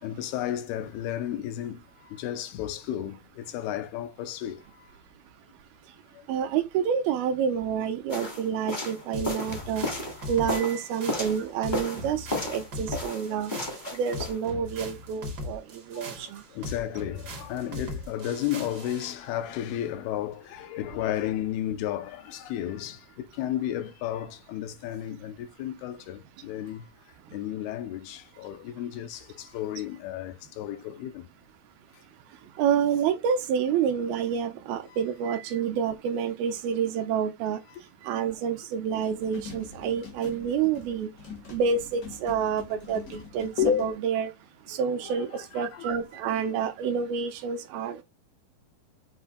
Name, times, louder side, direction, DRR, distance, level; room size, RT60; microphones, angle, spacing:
voice 1, 0.0-4.9 6.1-6.3 10.2-10.3 11.1-11.2 15.9-26.9 27.3-31.3 34.9-35.0 37.7-37.8 38.1-38.2 44.7-45.9 46.5-46.6, left 12 dB, 85° left, 2.7 m, -34 dB
voice 2, 6.3-9.9 10.3-13.5 13.9-16.4 32.6-37.6 38.0-41.1 41.5-44.3 44.7-48.0, right 7 dB, 80° right, 2.6 m, -28 dB
sound 1, 8.1-11.4 11.7-12.7 12.9-14.4, left 1 dB, 35° left, 0.7 m, -33 dB
sound 2, 9.1-19.2, left 1 dB, 60° right, 1.0 m, -39 dB
sound 3, 39.0-44.0, left 7 dB, 70° left, 0.8 m, -34 dB
7.9 x 2.8 x 5.0 m
omnidirectional pair, 4.5 m